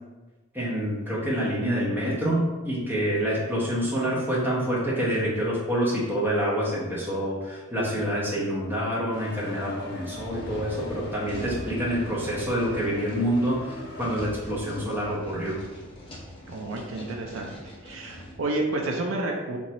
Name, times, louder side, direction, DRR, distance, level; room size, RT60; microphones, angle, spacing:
voice 1, 0.5-15.6, equal, 10° right, -6 dB, 1.0 m, -27 dB
sound 1, 9.1-14.2, left 1 dB, 50° left, 0.7 m, -41 dB
sound 2, 10.1-18.4, equal, 25° left, 0.8 m, -42 dB
voice 2, 16.5-17.5 17.8-19.6, right 2 dB, 65° right, 1 dB, 0.5 m, -30 dB
4.6 x 2.8 x 4.1 m, 1.2 s
head